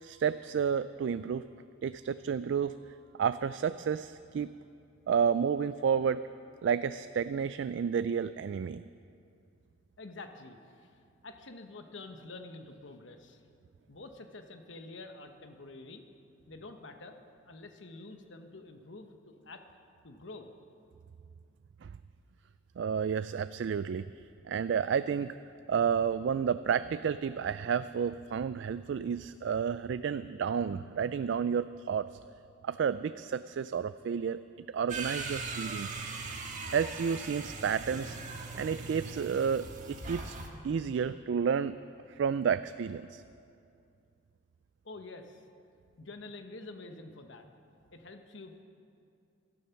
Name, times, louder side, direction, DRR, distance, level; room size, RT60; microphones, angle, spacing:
voice 1, 0.0-1.5 1.8-2.7 3.2-4.5 5.1-6.2 6.6-8.8 21.8-21.9 22.8-24.1 24.5-25.4 25.7-32.1 32.6-36.0 36.7-38.2 38.5-40.3 40.6-41.8 42.2-43.2, right 7 dB, 60° right, 13 dB, 0.3 m, -31 dB
voice 2, 10.0-10.9 11.2-13.4 13.9-16.0 16.5-17.2 17.5-19.6 20.0-20.5 44.8-45.4 46.0-47.5 47.9-48.6, left 2 dB, 65° left, 6 dB, 1.1 m, -47 dB
sound 1, 34.9-40.5, right 4 dB, 40° right, 1.5 m, -40 dB
16.0 x 13.5 x 5.8 m, 2.5 s
head